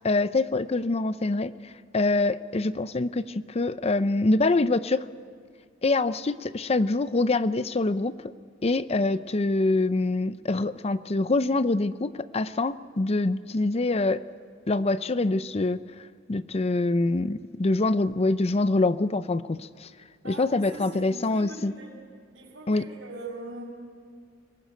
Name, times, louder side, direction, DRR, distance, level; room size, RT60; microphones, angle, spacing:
voice 1, 0.0-1.5 1.9-5.0 5.8-8.1 8.6-14.2 14.7-15.8 16.3-19.9 20.2-21.7 22.7-22.9, left 2 dB, 30° left, 14 dB, 0.6 m, -25 dB
voice 2, 20.2-21.9 22.3-23.6, right 2 dB, 85° right, -8 dB, 6.3 m, -41 dB
23.5 x 19.0 x 9.3 m, 2.1 s
head